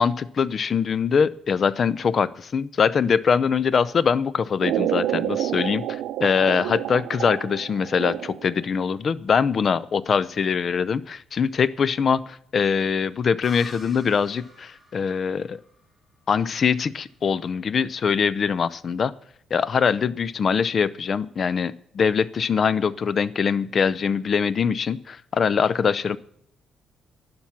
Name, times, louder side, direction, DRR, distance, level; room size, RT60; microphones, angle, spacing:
voice 1, 0.0-15.6 16.3-19.1 19.5-26.2, left 6 dB, 50° left, 19 dB, 0.6 m, -23 dB
sound 1, 4.6-8.6, right 12 dB, 85° right, 0.5 m, -28 dB
sound 2, 13.4-17.0, equal, 15° left, 7.1 m, -47 dB
11.5 x 11.5 x 5.9 m, 0.67 s
cardioid pair, 90°, 0 cm